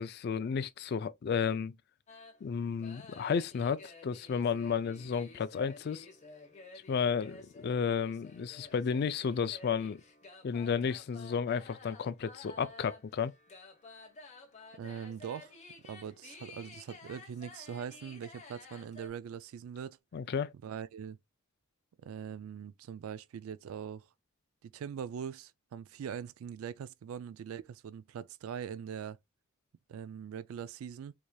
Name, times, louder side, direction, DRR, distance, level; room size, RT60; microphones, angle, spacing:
voice 1, 0.0-1.8 2.4-6.1 6.9-10.0 10.4-13.3 20.1-20.5, left 6 dB, 50° left, 0.3 m, -32 dB
sound 1, 2.1-19.1, left 3 dB, 35° left, 1.0 m, -53 dB
voice 2, 14.8-15.6 15.8-20.0 20.6-21.2 22.0-24.1 24.6-29.2 29.9-31.1, right 8 dB, 85° right, 0.3 m, -42 dB
4.6 x 2.7 x 2.2 m
head